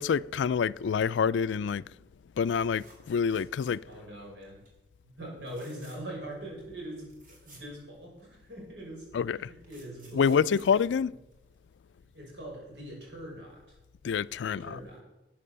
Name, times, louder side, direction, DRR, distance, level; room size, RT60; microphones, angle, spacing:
voice 1, 0.0-1.9 2.4-3.8 9.1-9.5 10.1-11.1 14.0-14.8, left 6 dB, 85° left, 0.4 m, -27 dB
sound 1, 2.4-4.1 4.4-4.7 5.4-6.2 6.6-6.7 6.9-8.4 9.2-11.7 13.6-13.8 14.1-14.2, right 2 dB, 50° right, 3.4 m, -58 dB
voice 2, 3.9-4.6 5.0-9.1 9.3-10.4 12.1-13.8 14.4-15.0, right 1 dB, 75° right, 5.9 m, -42 dB
12.5 x 8.6 x 6.8 m
head